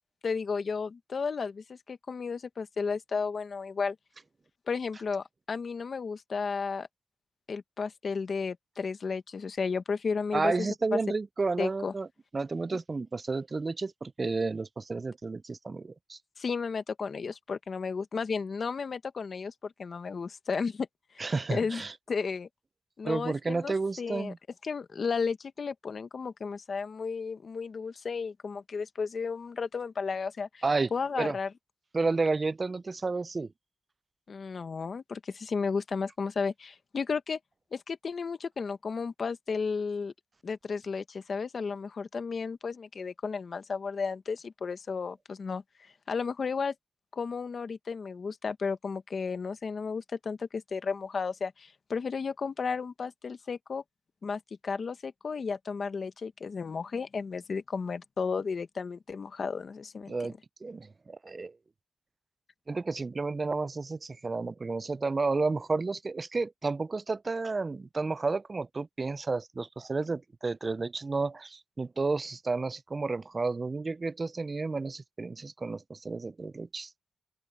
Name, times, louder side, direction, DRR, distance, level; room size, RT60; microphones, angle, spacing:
voice 1, 0.2-4.0 4.7-6.9 7.5-11.0 11.6-11.9 16.4-20.9 21.5-21.8 22.1-22.5 23.0-24.3 24.6-30.6 30.9-31.5 34.3-37.4 37.7-40.1 40.4-45.6 46.1-46.7 47.1-53.8 54.2-60.3, left 5 dB, 55° left, 1.1 m, -33 dB
voice 2, 10.3-12.1 12.3-16.2 21.2-21.9 23.0-24.4 30.6-30.9 31.2-31.4 31.9-33.5 60.1-60.4 60.6-61.6 62.7-76.9, right 3 dB, 35° right, 0.3 m, -31 dB
open air
wide cardioid pair, 100°, 0 cm